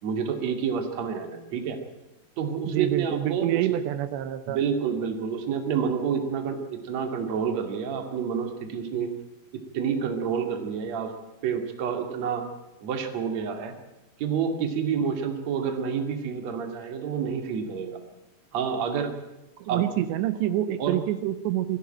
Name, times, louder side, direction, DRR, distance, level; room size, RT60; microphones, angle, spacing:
voice 1, 0.0-1.8 2.4-3.8 4.5-9.1 9.7-11.1 11.4-12.5 12.8-13.7 14.2-18.0 18.5-19.2 19.7-19.8 20.8-21.0, right 7 dB, 45° right, 5 dB, 3.0 m, -28 dB
voice 2, 2.7-4.6 19.6-21.8, right 13 dB, 85° right, 12 dB, 3.1 m, -27 dB
21.0 x 15.0 x 8.9 m, 1.0 s
omnidirectional pair, 5.0 m